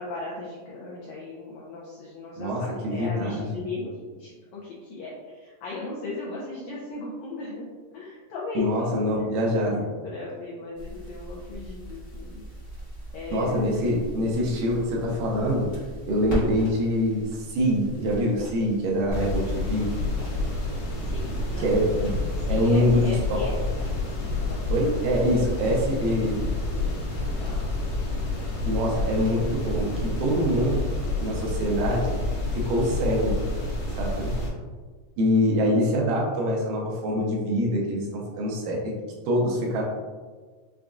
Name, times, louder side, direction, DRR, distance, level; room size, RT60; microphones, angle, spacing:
voice 1, 0.0-9.4 10.0-12.4 13.1-13.7 21.1-21.8 22.3-23.6 24.4-24.6 27.4-27.7 28.4-28.5 29.9-30.0, left 3 dB, 85° left, -6 dB, 1.6 m, -37 dB
voice 2, 2.4-3.5 8.6-9.9 13.3-15.7 16.0-19.9 21.6-22.2 22.5-23.4 24.7-26.4 28.6-29.9 30.2-30.8 31.2-32.2 32.5-33.4 34.0-34.4 35.2-38.9 39.3-39.8, equal, 80° right, -3 dB, 2.2 m, -24 dB
sound 1, 10.7-30.3, equal, 50° left, 1.0 m, -40 dB
sound 2, 19.1-34.5, left 2 dB, 70° left, 1.9 m, -29 dB
6.1 x 2.4 x 2.2 m, 1.4 s
omnidirectional pair, 4.0 m